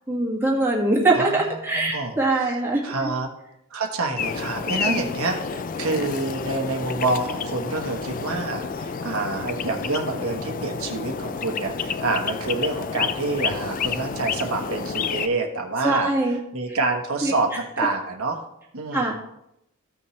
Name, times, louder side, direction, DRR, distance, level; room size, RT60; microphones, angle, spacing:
voice 1, 0.1-3.1 4.9-5.2 15.8-16.4 16.7-16.8 17.2-17.3 17.8-17.9 18.9-19.1, right 2 dB, 10° right, -4 dB, 1.9 m, -23 dB
voice 2, 1.1-2.1 2.8-3.3 3.7-16.1 16.5-18.4 18.7-19.1, right 3 dB, 80° right, 2 dB, 1.2 m, -27 dB
sound 1, 4.2-15.3, left 6 dB, 40° left, 0.4 m, -30 dB
14.5 x 5.7 x 3.2 m, 0.81 s
head